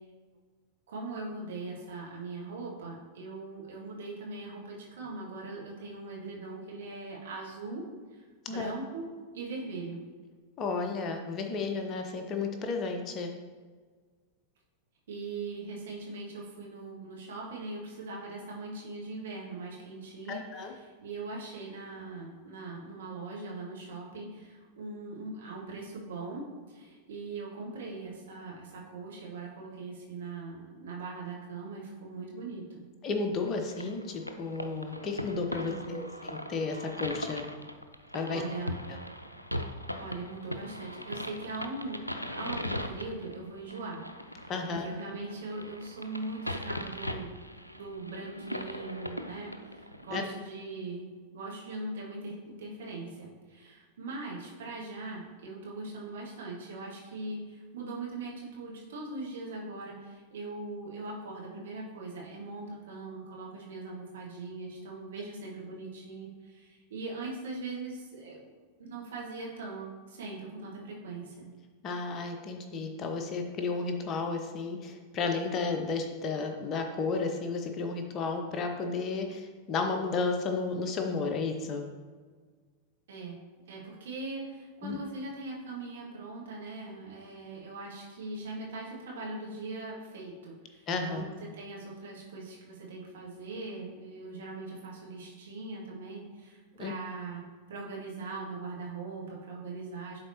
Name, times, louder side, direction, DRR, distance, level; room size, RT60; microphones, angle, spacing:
voice 1, 0.9-7.8 8.1-9.1 9.3-10.0 15.1-32.9 35.6-36.2 38.3-38.8 40.0-42.0 42.3-47.4 47.7-51.1 51.3-68.5 68.8-71.5 83.1-83.4 83.7-97.4 97.7-100.2, right 3 dB, 60° right, -2 dB, 1.7 m, -41 dB
voice 2, 10.6-13.3 20.3-20.7 33.0-37.4 38.1-38.4 44.5-44.9 50.1-50.2 71.8-81.9 84.8-85.0 90.9-91.2 96.8-96.9, left 4 dB, 30° left, 4 dB, 0.8 m, -33 dB
sound 1, 33.5-50.2, left 1 dB, 90° left, 0.4 m, -40 dB
11.0 x 4.1 x 2.9 m, 1.5 s
figure-of-eight pair, 90°, 0 cm